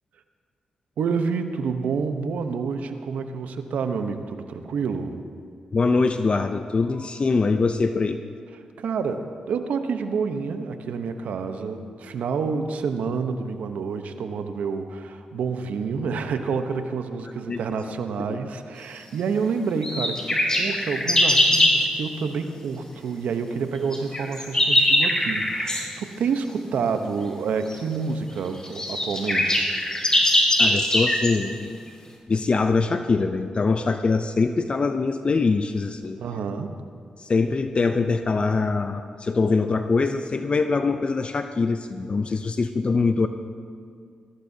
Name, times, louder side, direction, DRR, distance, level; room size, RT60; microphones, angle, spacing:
voice 1, 1.0-5.2 8.8-29.7 36.2-36.7, right 5 dB, 80° right, 7 dB, 0.9 m, -28 dB
voice 2, 5.7-8.2 17.5-17.6 18.3-18.4 30.6-31.8 32.3-36.2 37.2-43.3, left 4 dB, 45° left, 8 dB, 0.6 m, -23 dB
sound 1, 19.8-21.8 23.9-25.9 27.7-27.8 28.4-28.5 28.6-31.4, left 1 dB, 30° left, 3.7 m, -21 dB
20.0 x 15.5 x 2.8 m, 2.2 s
supercardioid pair, 50°, 3 cm